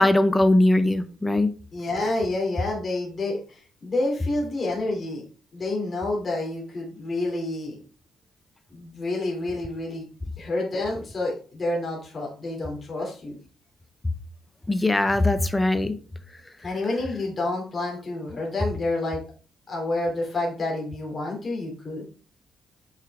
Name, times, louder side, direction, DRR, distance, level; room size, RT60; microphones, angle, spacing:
voice 1, 0.0-1.5 14.7-16.0, left 1 dB, 15° left, 12 dB, 0.6 m, -20 dB
voice 2, 1.7-5.2 5.5-7.8 8.7-10.1 10.4-13.4 16.6-19.2 19.7-22.0, left 2 dB, 35° left, -2 dB, 2.8 m, -29 dB
5.9 x 5.7 x 3.5 m, 0.39 s
cardioid pair, 90°, 0 cm